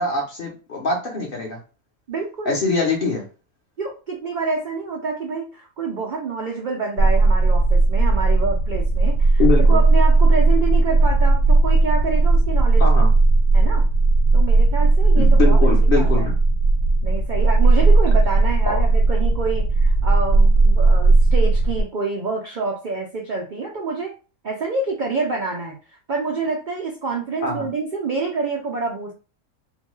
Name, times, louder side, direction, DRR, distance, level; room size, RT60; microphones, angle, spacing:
voice 1, 0.0-1.6 2.5-3.3 9.4-9.8 12.8-13.1 15.2-16.4 27.4-27.7, left 4 dB, 50° left, 0 dB, 0.7 m, -23 dB
voice 2, 2.1-2.6 3.8-9.4 9.7-12.8 13.5-13.8 14.3-16.3 17.0-24.1 24.4-25.8 26.1-29.1, right 4 dB, 85° right, -1 dB, 0.4 m, -27 dB
sound 1, 7.0-21.8, right 3 dB, 75° left, 1.0 m, -16 dB
2.7 x 2.2 x 3.0 m, 0.34 s
omnidirectional pair, 1.6 m